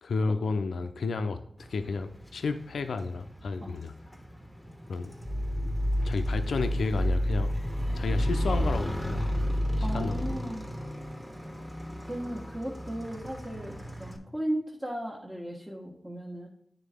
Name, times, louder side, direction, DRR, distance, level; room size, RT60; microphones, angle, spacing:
voice 1, 0.0-3.9 4.9-5.1 5.6-5.7 6.0-7.5 7.9-9.4 9.8-10.3, left 4 dB, 90° left, 8 dB, 0.4 m, -32 dB
Motorcycle, 1.6-14.2, equal, ahead, 1.2 m, -40 dB
sound 1, 5.2-10.3, equal, 15° left, 0.6 m, -29 dB
voice 2, 9.8-10.7 12.0-16.5, right 1 dB, 15° right, -5 dB, 1.3 m, -36 dB
9.2 x 3.7 x 3.5 m, 0.72 s
cardioid pair, 50°, 0 cm